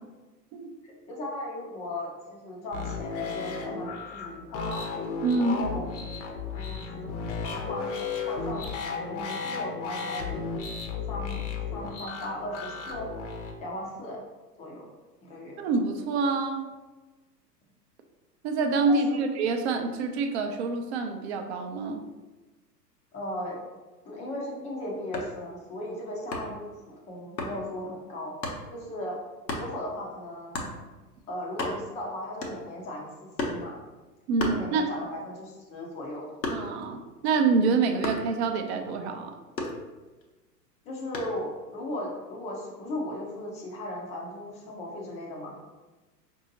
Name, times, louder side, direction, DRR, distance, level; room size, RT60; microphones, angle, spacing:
voice 1, 0.8-4.8 5.4-5.9 6.3-7.2 7.4-7.9 8.3-10.4 11.1-11.4 11.7-13.1 13.6-14.2 14.6-14.9 15.2-15.6 18.9-19.2 23.1-23.6 24.0-28.3 28.7-29.2 29.6-30.7 31.3-33.8 34.4-36.3 40.8-45.6, left 1 dB, 15° left, -2 dB, 0.4 m, -37 dB
sound 1, 2.7-13.5, left 5 dB, 45° left, 0.7 m, -34 dB
voice 2, 5.2-5.7 15.6-16.7 18.4-22.0 34.3-34.9 36.5-39.3, right 4 dB, 40° right, 5 dB, 0.5 m, -26 dB
sound 2, 25.1-25.4 26.3-26.6 27.4-27.6 28.4-28.6 29.5-29.7 30.5-30.8 31.2-31.3 31.5-32.0 32.4-32.8 33.4-33.7 34.4-35.1 35.5-36.9 38.0-38.3 39.6-40.2 41.1-41.4, left 2 dB, 85° left, 0.8 m, -33 dB
4.8 x 2.7 x 2.7 m, 1.2 s
figure-of-eight pair, 95°, 50 cm